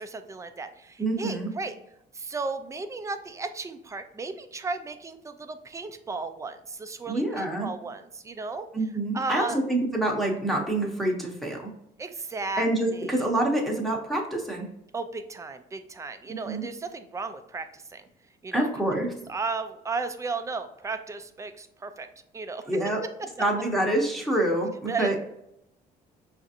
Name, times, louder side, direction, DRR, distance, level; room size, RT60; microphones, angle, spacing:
voice 1, 0.0-1.7 2.1-8.7 9.1-9.6 12.0-13.2 14.9-18.0 18.4-18.7 19.3-22.1 22.3-22.8 24.9-25.2, right 4 dB, 20° right, 9 dB, 0.3 m, -34 dB
voice 2, 1.0-1.5 7.1-7.7 8.7-11.7 12.6-14.7 16.3-16.7 18.5-19.1 22.7-23.0 23.4-25.2, right 1 dB, ahead, -1 dB, 0.8 m, -26 dB
5.0 x 2.5 x 2.7 m, 0.79 s
cardioid pair, 110°, 17 cm